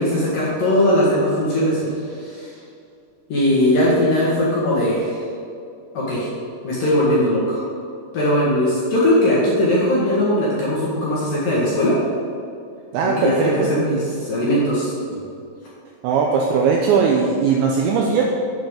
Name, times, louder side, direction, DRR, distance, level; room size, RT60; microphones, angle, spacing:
voice 1, 0.0-1.8 2.1-2.5 3.3-5.2 5.9-6.3 6.6-7.6 8.1-11.9 13.0-15.2, left 1 dB, 60° left, -7 dB, 2.5 m, -19 dB
voice 2, 12.9-13.7 16.0-18.2, right 5 dB, 90° right, 0 dB, 2.5 m, -19 dB
9.4 x 9.0 x 3.8 m, 2.5 s
omnidirectional pair, 5.9 m